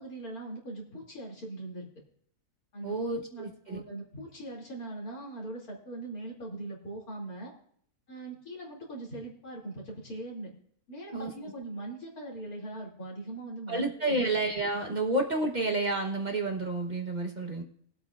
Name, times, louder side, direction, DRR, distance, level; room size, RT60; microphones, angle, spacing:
voice 1, 0.0-1.9 2.7-2.9 3.3-7.5 8.1-10.5 10.9-14.3, right 2 dB, 75° left, -3 dB, 3.1 m, -41 dB
voice 2, 2.8-3.8 11.1-11.3 13.7-17.6, right 2 dB, 35° right, 2 dB, 1.1 m, -30 dB
21.0 x 8.2 x 2.4 m, 0.64 s
omnidirectional pair, 1.6 m